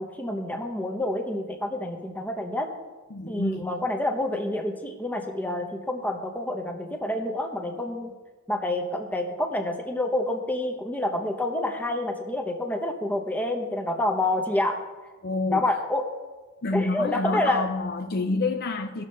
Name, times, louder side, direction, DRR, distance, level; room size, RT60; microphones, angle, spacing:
voice 1, 0.0-2.7 3.3-8.1 8.5-14.8 15.5-16.1 16.7-17.6, left 1 dB, 10° left, 4 dB, 0.9 m, -28 dB
voice 2, 3.1-3.7 15.2-15.7 16.6-19.0, left 3 dB, 50° left, 5 dB, 0.6 m, -28 dB
17.5 x 6.6 x 3.2 m, 1.3 s
head